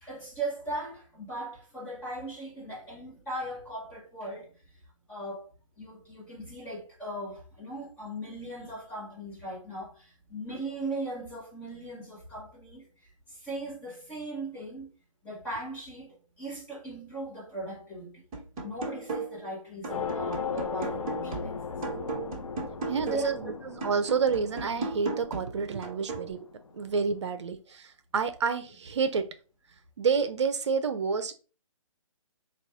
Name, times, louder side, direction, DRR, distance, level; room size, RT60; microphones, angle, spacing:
voice 1, 0.0-4.6 5.1-5.5 5.8-12.9 13.3-14.9 15.2-18.2 18.6-21.8 23.0-23.5, right 1 dB, 10° left, 1.1 m, -38 dB
sound 1, 18.3-19.5 19.8-23.4 23.8-26.3, right 3 dB, 20° right, 1.3 m, -37 dB
sound 2, 19.9-26.7, left 6 dB, 80° left, 0.8 m, -37 dB
voice 2, 22.9-26.5 26.7-29.3 30.0-31.3, right 5 dB, 55° right, 0.6 m, -29 dB
4.1 x 2.4 x 4.7 m
hypercardioid pair, 160°, 17 cm